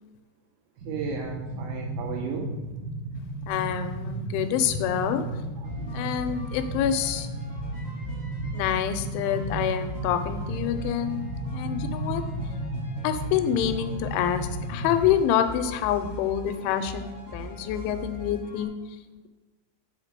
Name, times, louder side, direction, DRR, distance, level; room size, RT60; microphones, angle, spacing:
sound 1, 0.8-15.1, right 1 dB, 70° right, 2.1 m, -34 dB
voice 1, 0.9-2.5 5.6-6.1, right 6 dB, 85° right, 0 dB, 2.3 m, -35 dB
voice 2, 3.5-5.2 5.9-7.3 8.5-12.2 13.0-18.7, left 9 dB, 85° left, 9 dB, 2.9 m, -27 dB
sound 2, 5.6-18.7, left 1 dB, 40° left, 0.8 m, -41 dB
6.6 x 4.6 x 6.6 m, 1.2 s
omnidirectional pair, 5.3 m